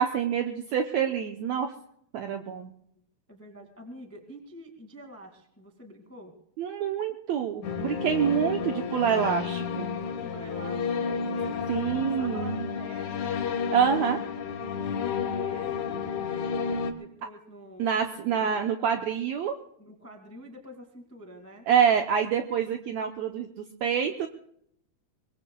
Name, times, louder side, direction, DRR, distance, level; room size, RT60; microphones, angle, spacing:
voice 1, 0.0-1.7 2.1-2.7 6.6-9.9 11.7-12.6 13.7-14.2 17.8-19.6 21.7-24.3, right 8 dB, 85° right, 4 dB, 1.6 m, -26 dB
voice 2, 3.3-6.3 10.0-11.6 11.9-14.3 15.0-16.0 16.9-18.6 19.8-21.6, equal, 10° left, 4 dB, 0.8 m, -46 dB
sound 1, 7.6-16.9, left 5 dB, 65° left, 2.1 m, -31 dB
24.0 x 21.0 x 2.3 m, 0.70 s
omnidirectional pair, 4.3 m